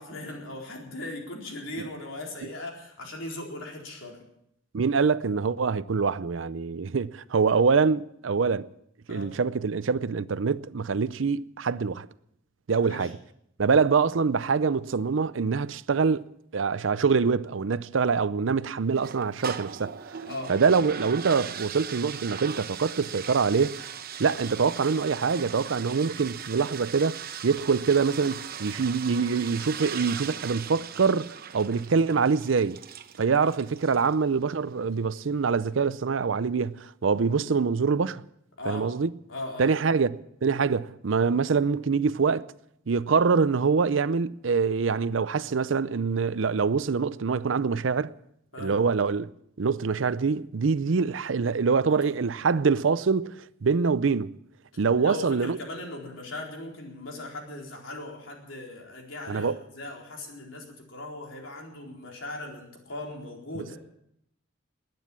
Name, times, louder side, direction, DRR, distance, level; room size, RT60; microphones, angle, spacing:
voice 1, 0.0-4.2 9.1-9.3 12.8-13.1 20.2-20.5 33.3-33.5 38.6-38.9 39.3-39.8 48.5-48.7 51.9-52.1 54.9-63.8, left 2 dB, 75° left, 4.3 m, -39 dB
voice 2, 4.7-8.7 9.1-12.1 12.7-13.1 13.6-19.9 20.5-23.9 24.2-32.8 33.2-38.2 38.7-39.1 39.6-42.5 42.9-48.1 48.6-49.3 49.6-54.3 54.8-55.6 59.3-59.6, right 5 dB, 70° right, 0.5 m, -25 dB
sound 1, 18.9-34.2, right 8 dB, 50° right, 0.9 m, -39 dB
20.5 x 9.5 x 7.3 m
head